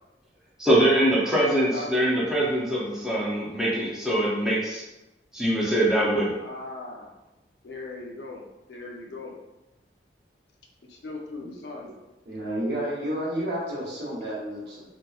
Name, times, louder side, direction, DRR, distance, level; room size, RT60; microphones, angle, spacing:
voice 1, 0.6-4.8 5.3-6.3, right 1 dB, 5° right, -7 dB, 0.5 m, -23 dB
voice 2, 1.7-2.3 6.4-7.1 7.6-9.4 10.9-11.9, left 2 dB, 65° left, 0 dB, 0.5 m, -39 dB
voice 3, 12.3-14.9, right 1 dB, 65° right, -5 dB, 0.8 m, -31 dB
2.8 x 2.1 x 2.3 m, 1.0 s
head